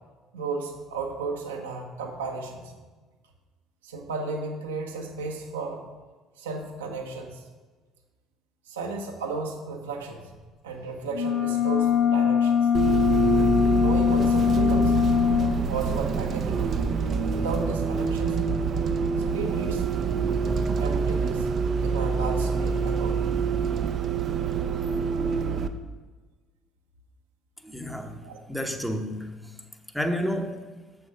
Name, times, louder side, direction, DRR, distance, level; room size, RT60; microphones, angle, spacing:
voice 1, 0.3-2.7 3.8-5.8 6.4-7.4 8.7-10.3 10.6-12.7 13.7-14.9 15.7-16.9 17.3-18.4 19.3-20.2 20.8-21.5 21.8-23.4 28.2-28.4, right 3 dB, 80° right, 1 dB, 1.0 m, -34 dB
sound 1, 11.1-15.5, left 7 dB, 70° left, 1.8 m, -22 dB
Bus, 12.7-25.7, right 5 dB, 45° right, 0.6 m, -26 dB
voice 2, 27.6-29.3 29.9-30.6, equal, ahead, 5 dB, 1.0 m, -30 dB
7.2 x 7.1 x 4.9 m, 1.3 s
figure-of-eight pair, 55°, 0 cm